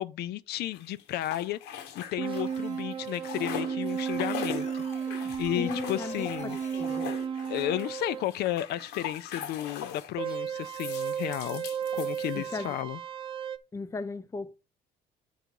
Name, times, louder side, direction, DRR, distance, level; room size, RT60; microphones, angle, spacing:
voice 1, 0.0-6.6 7.5-11.6 11.9-13.0, left 13 dB, 75° left, 0.4 m, -33 dB
sound 1, 0.7-2.7 2.9-10.2 10.6-12.7, left 8 dB, 90° left, 1.0 m, -41 dB
sound 2, 2.2-8.3 10.2-13.6, right 7 dB, 30° right, 0.6 m, -34 dB
Glitching data sounds with vocal elements, 2.4-2.8 3.9-7.3, left 6 dB, 40° left, 0.8 m, -49 dB
voice 2, 5.6-7.1 12.3-12.8 13.7-14.6, left 4 dB, 15° left, 0.5 m, -36 dB
9.1 x 3.9 x 4.6 m
cardioid pair, 110°, 17 cm